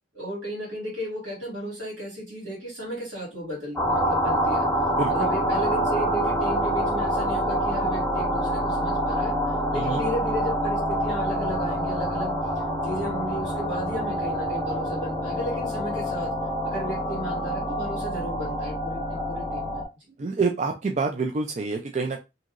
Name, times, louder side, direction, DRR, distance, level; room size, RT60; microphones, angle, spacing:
voice 1, 0.1-4.7 5.0-9.3 9.7-12.3 12.8-16.3 16.6-19.9, equal, 80° right, 2.0 m, -34 dB
sound 1, 3.7-19.9, equal, 10° left, 0.9 m, -26 dB
voice 2, 5.0-5.3 9.7-10.0 20.2-22.2, right 4 dB, 40° right, 0.3 m, -27 dB
2.9 x 2.7 x 2.4 m
head